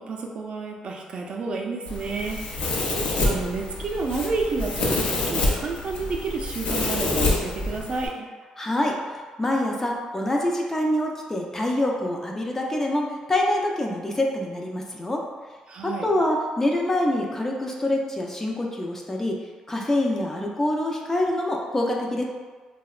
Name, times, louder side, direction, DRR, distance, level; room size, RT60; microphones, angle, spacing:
voice 1, 0.0-2.9 3.2-8.3 15.7-16.1, right 4 dB, 50° right, 0 dB, 0.3 m, -30 dB
Domestic sounds home sounds, 1.9-8.1, left 2 dB, 70° left, 0.5 m, -27 dB
voice 2, 8.6-9.0 9.4-15.2 15.8-19.4 19.7-22.2, left 1 dB, 20° left, 0 dB, 0.4 m, -25 dB
2.7 x 2.1 x 2.3 m, 1.4 s
cardioid pair, 85°, 2 cm